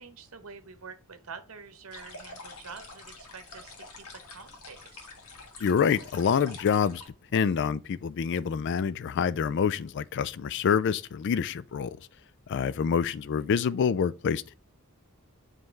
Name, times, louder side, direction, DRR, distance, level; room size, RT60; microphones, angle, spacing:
voice 1, 0.0-5.1, right 5 dB, 65° right, 0.9 m, -47 dB
sound 1, 1.9-7.1, left 3 dB, 90° left, 1.5 m, -47 dB
voice 2, 5.6-7.0 7.3-12.0 12.5-14.5, left 7 dB, 55° left, 0.3 m, -26 dB
7.5 x 3.2 x 4.5 m
head